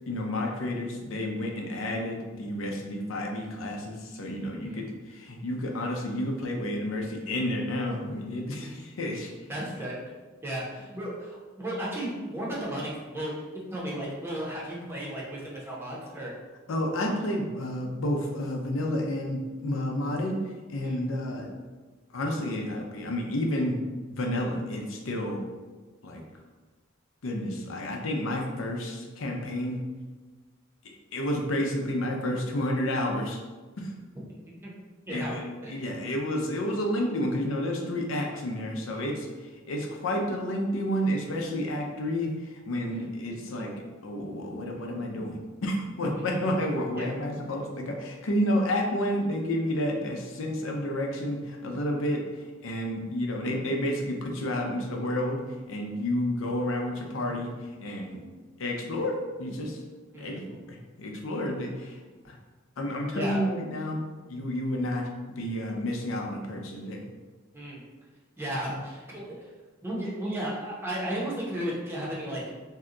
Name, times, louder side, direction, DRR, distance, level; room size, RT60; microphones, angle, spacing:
voice 1, 0.1-9.3 16.7-20.4 20.7-21.5 22.1-23.8 24.1-25.4 26.0-26.2 27.2-29.8 30.8-33.4 33.8-33.9 35.1-58.2 58.6-59.8 60.1-62.0 62.2-62.4 62.8-67.0, left 1 dB, 75° left, 1 dB, 0.5 m, -30 dB
voice 2, 4.6-4.9 8.6-8.8 9.5-10.0 10.4-16.3 20.8-21.1 34.6-34.7 35.1-35.3 35.6-35.8 42.9-43.1 46.2-46.3 47.0-47.1 60.1-60.6 63.1-63.5 67.5-67.8 68.4-69.5 69.8-72.4, right 1 dB, 10° right, -6 dB, 0.8 m, -34 dB
2.7 x 2.2 x 3.7 m, 1.3 s
head